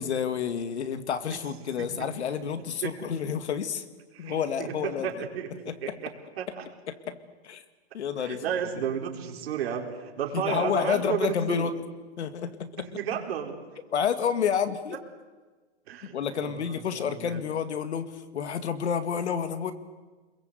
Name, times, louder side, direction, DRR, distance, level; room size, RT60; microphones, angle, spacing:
voice 1, 0.0-3.8 4.2-5.1 5.7-6.0 6.9-7.2 7.4-7.6 7.9-8.4 10.3-11.7 12.2-12.9 13.9-15.0 16.1-19.7, left 7 dB, 90° left, 10 dB, 2.2 m, -29 dB
voice 2, 4.1-6.1 6.4-6.7 8.2-11.7 12.9-13.6 15.9-17.4, right 8 dB, 65° right, 2 dB, 4.6 m, -33 dB
26.0 x 22.0 x 8.3 m, 1.3 s
hypercardioid pair, 155°, 33 cm